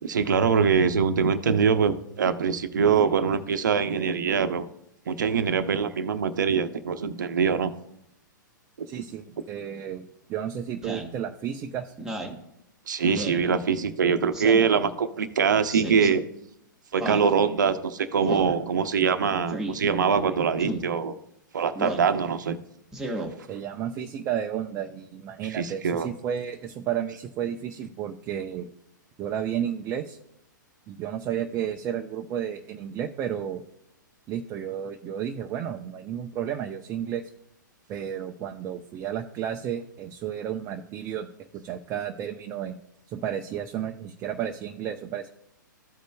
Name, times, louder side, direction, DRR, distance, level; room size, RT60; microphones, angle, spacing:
voice 1, 0.0-4.7 5.1-7.7 12.9-16.2 16.9-21.1 21.5-22.6 25.5-26.1, right 6 dB, 70° right, 11 dB, 0.8 m, -23 dB
voice 2, 8.9-11.9 23.5-28.7 29.2-30.2 30.9-33.6 34.3-37.2 37.9-42.8 43.1-45.3, right 9 dB, 25° right, 3 dB, 0.5 m, -32 dB
Speech synthesizer, 10.8-11.1 12.0-12.4 13.1-13.4 14.3-14.8 15.7-16.1 17.0-17.3 18.2-18.6 19.5-19.8 20.6-20.9 21.8-22.1 22.9-23.3, right 1 dB, 5° right, 1.2 m, -33 dB
14.5 x 5.1 x 2.3 m, 0.80 s
figure-of-eight pair, 115°, 11 cm